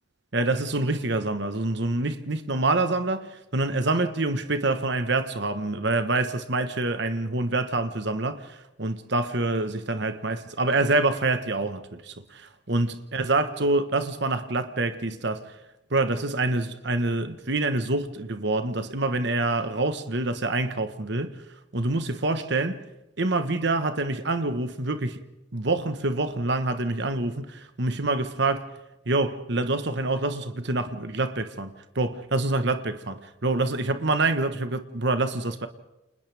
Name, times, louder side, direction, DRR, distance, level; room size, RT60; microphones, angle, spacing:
voice 1, 0.3-15.4 15.9-21.3 21.7-22.8 23.2-25.2 25.5-28.7 29.1-35.7, right 2 dB, 55° right, 1.4 m, -26 dB
29.5 x 28.5 x 3.5 m
head